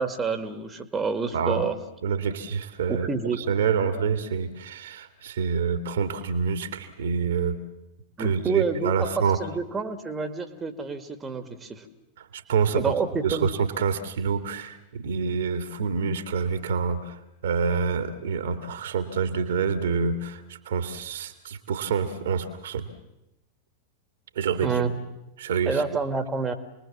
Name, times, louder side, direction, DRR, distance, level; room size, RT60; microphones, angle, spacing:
voice 1, 0.0-1.8 2.9-3.4 8.2-9.1 9.4-11.9 12.7-13.5 24.6-24.9 25.7-26.5, right 5 dB, 15° right, 9 dB, 2.1 m, -28 dB
voice 2, 1.3-1.7 2.0-3.1 3.4-7.6 8.2-9.4 12.2-12.9 13.2-20.4 20.7-22.9 24.4-24.7 25.4-25.8, right 6 dB, 60° right, 9 dB, 2.4 m, -27 dB
28.5 x 21.5 x 7.4 m, 0.90 s
figure-of-eight pair, 90°, 0 cm